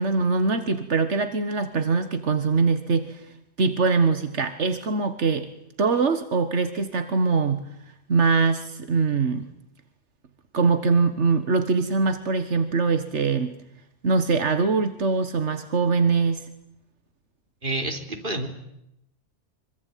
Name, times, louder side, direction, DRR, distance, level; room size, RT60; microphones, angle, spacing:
voice 1, 0.0-3.3 3.6-5.5 5.8-7.6 8.1-9.5 10.5-13.5 14.0-16.5, right 4 dB, 85° right, 9 dB, 1.9 m, -23 dB
voice 2, 17.6-18.5, right 2 dB, 50° right, 5 dB, 3.9 m, -29 dB
25.5 x 25.0 x 9.4 m, 0.81 s
omnidirectional pair, 1.2 m